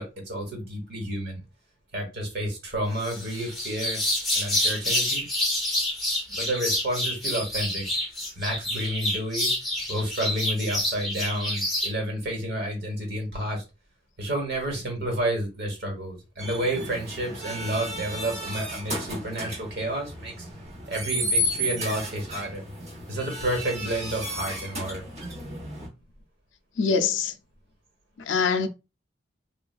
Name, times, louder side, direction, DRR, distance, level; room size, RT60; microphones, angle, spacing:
voice 1, 0.0-1.4 1.9-4.0 4.4-5.3 6.3-7.9 8.4-9.5 9.9-13.6 14.2-20.5 20.9-22.6 23.1-25.0, right 1 dB, 55° right, 1.2 m, -30 dB
sound 1, 3.0-11.9, left 1 dB, ahead, 0.9 m, -28 dB
sound 2, 16.4-25.9, equal, 35° right, 1.0 m, -33 dB
voice 2, 26.8-27.3 28.3-28.7, left 5 dB, 70° left, 0.4 m, -23 dB
3.2 x 2.3 x 2.3 m
head